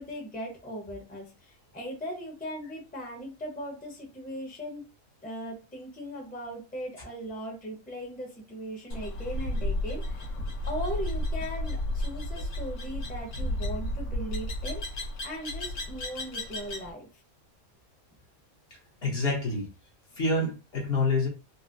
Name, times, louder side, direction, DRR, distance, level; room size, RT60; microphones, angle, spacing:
voice 1, 0.0-4.8 5.2-10.3 10.7-17.1, equal, 10° left, 0.8 m, -38 dB
sound 1, 8.9-16.9, left 1 dB, 70° left, 1.3 m, -33 dB
voice 2, 19.0-19.7 20.2-21.3, left 2 dB, 50° left, 1.2 m, -27 dB
4.1 x 2.1 x 2.5 m
omnidirectional pair, 1.4 m